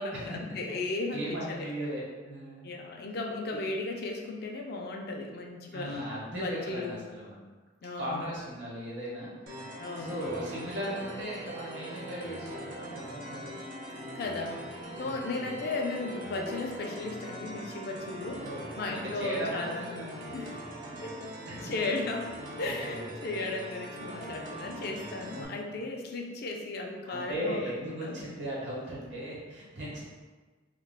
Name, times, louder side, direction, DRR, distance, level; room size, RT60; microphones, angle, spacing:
voice 1, 0.0-1.7 2.6-6.1 6.4-7.0 7.8-8.4 9.8-10.2 14.1-14.6 15.0-18.5 18.8-19.9 20.3-20.6 21.0-21.1 21.6-22.3 22.6-28.2, left 3 dB, 55° left, 1 dB, 0.4 m, -35 dB
voice 2, 1.1-2.7 5.7-7.4 8.0-9.6 10.0-13.5 15.0-15.5 18.2-18.7 18.9-20.3 21.5-21.7 22.6-23.0 23.2-23.3 25.3-25.7 27.1-30.0, equal, 70° right, -6 dB, 1.0 m, -37 dB
sound 1, 9.5-25.5, right 1 dB, 50° right, 0.6 m, -42 dB
2.2 x 2.2 x 3.3 m, 1.3 s
head